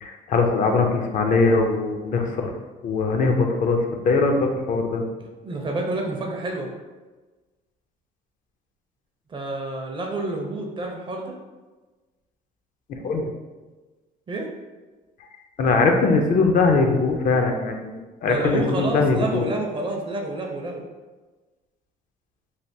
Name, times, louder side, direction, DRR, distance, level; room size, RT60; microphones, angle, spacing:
voice 1, 0.0-2.5 2.8-5.0 12.9-13.3 15.6-19.5, left 3 dB, 50° left, 3 dB, 0.4 m, -21 dB
voice 2, 5.4-6.7 9.3-11.4 14.3-14.5 18.2-20.9, right 2 dB, 30° right, 1 dB, 0.5 m, -28 dB
3.2 x 2.4 x 2.6 m, 1.2 s
cardioid pair, 110°, 17 cm